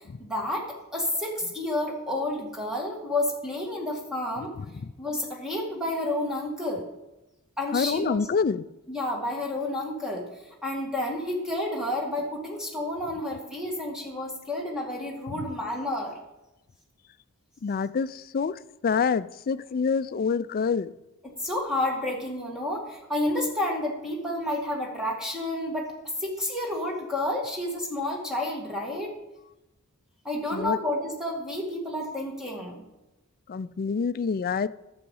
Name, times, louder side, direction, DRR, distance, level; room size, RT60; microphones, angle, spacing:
voice 1, 0.2-4.5 5.0-6.9 7.6-8.2 8.9-10.3 10.6-16.2 21.2-29.1 30.2-32.8, left 1 dB, 5° right, 2.0 m, -30 dB
voice 2, 4.6-4.9 7.7-8.7 15.3-15.5 17.6-20.9 30.5-30.8 33.5-34.7, left 5 dB, 40° left, 0.4 m, -27 dB
11.5 x 6.9 x 5.5 m
head